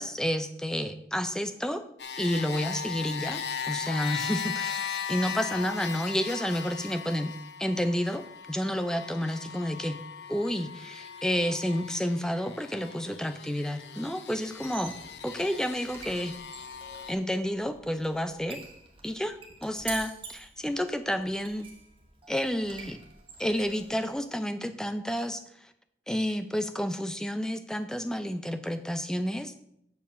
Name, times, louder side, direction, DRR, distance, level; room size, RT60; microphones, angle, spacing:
voice 1, 0.0-1.8 2.2-10.0 10.3-14.9 15.2-16.4 17.1-18.6 19.0-21.7 22.3-23.0 23.4-25.4 26.1-29.5, equal, 5° left, 10 dB, 0.4 m, -30 dB
sound 1, 2.0-17.1, left 7 dB, 80° left, 0.7 m, -38 dB
Squeak, 14.5-24.1, right 4 dB, 30° right, 1.2 m, -47 dB
7.1 x 4.7 x 6.1 m, 0.76 s
head